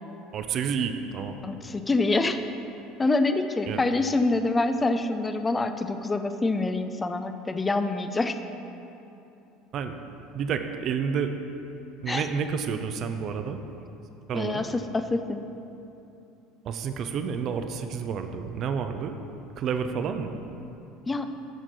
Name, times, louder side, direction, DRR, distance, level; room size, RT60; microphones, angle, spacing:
voice 1, 0.3-1.4 3.7-3.8 9.7-10.0 10.3-11.3 12.0-13.6 14.3-14.6 16.6-19.1 19.6-20.4, right 6 dB, 45° right, 7 dB, 0.6 m, -29 dB
voice 2, 1.4-2.5 3.0-8.4 12.1-12.3 14.3-15.4 21.1-21.3, left 2 dB, 20° left, 9 dB, 0.5 m, -26 dB
13.0 x 6.0 x 4.1 m, 2.8 s
figure-of-eight pair, 65°, 0 cm